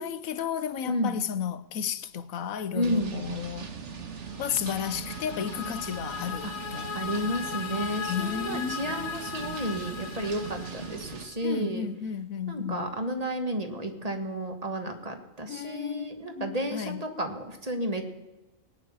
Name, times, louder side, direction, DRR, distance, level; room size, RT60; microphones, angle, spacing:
voice 1, 0.0-3.7 4.4-6.9 8.1-9.1 11.4-13.0 15.5-17.0, left 8 dB, 80° left, 1.3 m, -33 dB
voice 2, 0.9-1.2 2.7-3.1 6.4-6.5 6.9-11.9 12.5-18.1, equal, 30° right, 1.7 m, -32 dB
sound 1, 2.8-11.3, right 6 dB, 60° right, 1.5 m, -40 dB
sound 2, 4.3-11.4, left 7 dB, 55° left, 1.1 m, -38 dB
18.0 x 9.7 x 7.2 m
omnidirectional pair, 1.4 m